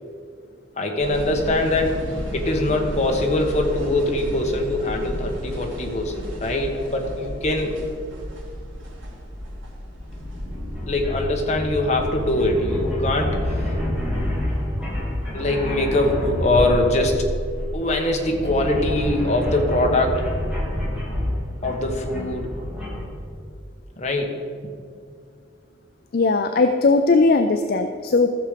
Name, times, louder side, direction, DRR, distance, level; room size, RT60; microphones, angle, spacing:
voice 1, 0.8-2.1 2.3-7.7 10.9-13.5 15.3-17.2 17.7-20.3 21.6-22.5 24.0-24.7, left 2 dB, 35° left, 1 dB, 1.3 m, -23 dB
sound 1, 1.0-20.6, equal, 85° right, 2.8 m, -35 dB
sound 2, 10.0-23.0, left 1 dB, 5° right, 2.4 m, -28 dB
voice 2, 26.1-28.3, left 3 dB, 50° left, 7 dB, 0.4 m, -18 dB
14.5 x 6.8 x 5.1 m, 2.3 s
head